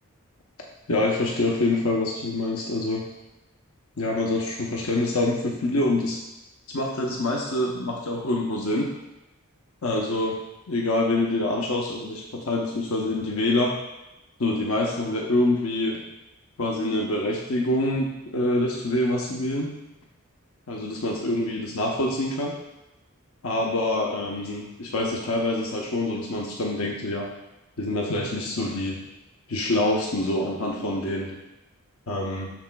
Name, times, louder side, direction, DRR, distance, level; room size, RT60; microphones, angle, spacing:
voice 1, 0.9-3.0 4.0-6.2 6.7-8.9 9.8-10.4 10.7-13.7 14.4-16.0 16.6-19.7 20.7-22.5 23.4-27.3 27.8-29.0 29.5-31.3 32.1-32.5, left 2 dB, 75° left, -1 dB, 0.8 m, -25 dB
12.0 x 4.3 x 2.2 m, 0.95 s
head